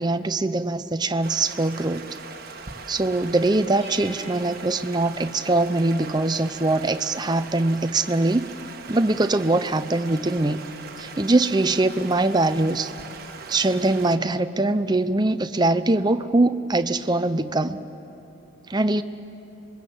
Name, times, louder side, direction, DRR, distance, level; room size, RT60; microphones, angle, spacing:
voice 1, 0.0-2.1 2.9-8.5 8.9-10.6 11.0-12.9 13.5-17.8 18.7-19.0, right 2 dB, 20° right, 10 dB, 0.6 m, -22 dB
Stream, 1.2-14.2, right 5 dB, 45° right, 1.4 m, -41 dB
sound 1, 3.8-6.0, right 2 dB, 30° left, 5.2 m, -47 dB
26.5 x 22.0 x 7.8 m, 2.9 s
head